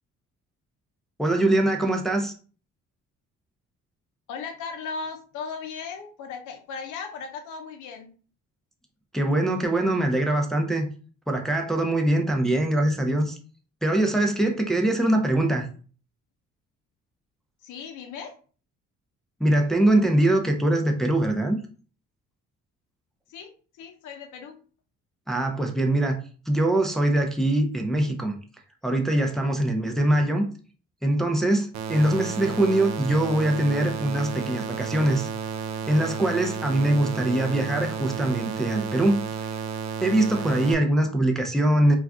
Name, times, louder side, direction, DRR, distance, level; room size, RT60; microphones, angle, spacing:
voice 1, 1.2-2.3 9.1-10.8 11.3-13.4 13.8-15.7 19.4-21.6 25.3-26.2 26.5-28.4 28.8-30.5 31.0-35.3 35.9-39.6 40.0-42.0, right 1 dB, ahead, 2 dB, 0.4 m, -23 dB
voice 2, 4.3-8.1 17.6-18.4 23.3-24.6, left 5 dB, 75° left, 4 dB, 0.5 m, -37 dB
sound 1, 31.7-40.7, right 7 dB, 65° right, 0.4 m, -32 dB
2.4 x 2.3 x 3.4 m, 0.40 s
cardioid pair, 90°, 30 cm